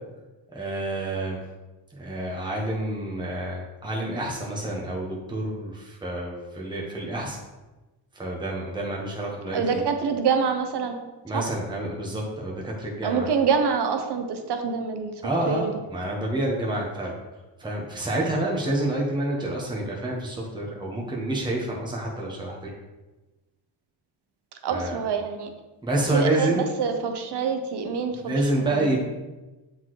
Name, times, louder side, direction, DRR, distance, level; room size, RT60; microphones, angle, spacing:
voice 1, 0.5-1.4 1.9-7.4 8.1-9.8 11.2-13.3 15.2-17.1 17.6-22.7 24.7-25.0 25.8-26.6 28.1-29.0, right 1 dB, 10° right, -3 dB, 1.4 m, -28 dB
voice 2, 9.5-11.0 11.3-11.4 13.0-15.1 15.5-15.7 24.6-25.5 26.1-28.9, right 6 dB, 55° right, 6 dB, 0.9 m, -26 dB
7.1 x 4.1 x 3.2 m, 1.1 s
cardioid pair, 75°, 50 cm